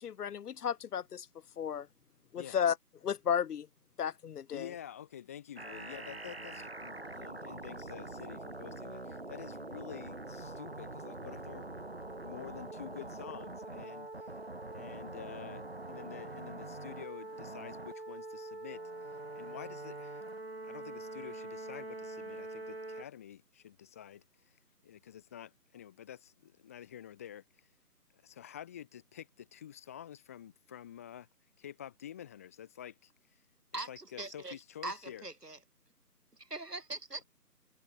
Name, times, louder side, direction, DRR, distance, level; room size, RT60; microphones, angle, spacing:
voice 1, 0.0-1.3 1.6-1.9 2.3-2.8 3.0-3.7 4.0-4.7, left 8 dB, 75° left, 0.5 m, -33 dB
voice 2, 4.5-11.7 12.1-14.4 14.7-18.8 19.3-20.2 20.6-24.6 24.8-27.7 28.2-31.3 31.6-33.1 33.9-35.3, left 10 dB, 10° left, 1.9 m, -49 dB
sound 1, 5.6-23.0, right 2 dB, 40° right, 0.6 m, -44 dB
voice 3, 33.7-34.6 34.8-35.6 36.4-37.2, right 2 dB, 75° right, 6.1 m, -41 dB
figure-of-eight pair, 160°, 47 cm